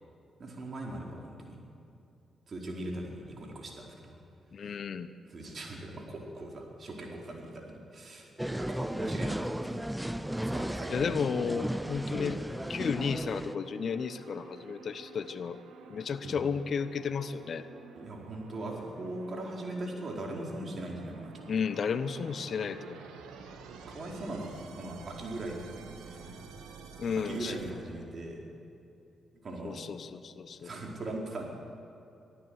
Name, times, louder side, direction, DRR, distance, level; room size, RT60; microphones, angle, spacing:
voice 1, 0.4-1.6 2.5-4.2 4.6-4.7 5.2-9.8 10.3-10.9 16.2-16.4 17.9-21.3 23.9-25.6 26.0-26.4 27.2-28.4 29.4-29.8 30.6-31.4, right 2 dB, 50° right, 0 dB, 4.6 m, -40 dB
voice 2, 4.5-5.1 10.9-12.4 12.7-15.6 15.9-17.7 21.5-23.0 27.0-27.6 29.6-30.7, left 6 dB, 60° left, 13 dB, 0.9 m, -33 dB
sound 1, 8.4-13.5, equal, 5° right, 0.5 m, -34 dB
sound 2, 9.6-27.7, right 5 dB, 80° right, 1.8 m, -50 dB
23.0 x 13.5 x 8.2 m, 2.8 s
hypercardioid pair, 40°, 0 cm